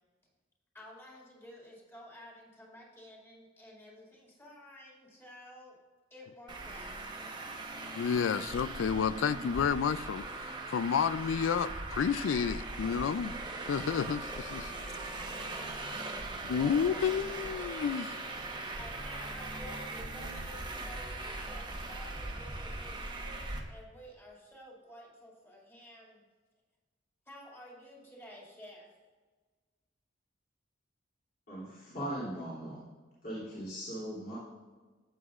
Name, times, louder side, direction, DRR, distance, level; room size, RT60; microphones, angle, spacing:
voice 1, 0.7-5.8 6.1-7.0 8.3-8.4 14.6-15.7 16.6-17.4 18.8-26.2 27.3-28.9, equal, 15° left, 2.4 m, -52 dB
Traffic noise roadway noise, 6.5-23.6, right 2 dB, 25° right, 1.0 m, -40 dB
voice 2, 8.0-13.4 13.7-14.8 16.4-18.1, left 7 dB, 85° left, 0.4 m, -31 dB
voice 3, 31.5-32.8 33.2-34.4, equal, 50° left, 3.0 m, -39 dB
12.5 x 8.0 x 2.5 m
head